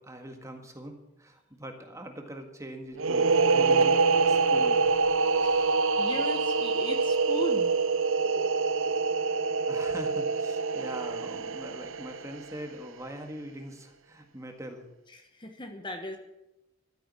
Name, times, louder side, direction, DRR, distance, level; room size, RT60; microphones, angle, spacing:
voice 1, 0.0-4.9 9.4-14.9, right 1 dB, 15° right, 4 dB, 1.8 m, -42 dB
sound 1, 3.0-12.5, right 4 dB, 75° right, 0.7 m, -25 dB
voice 2, 5.4-7.7 15.3-16.2, left 1 dB, 25° left, 5 dB, 1.3 m, -38 dB
13.0 x 9.9 x 8.3 m, 0.90 s
head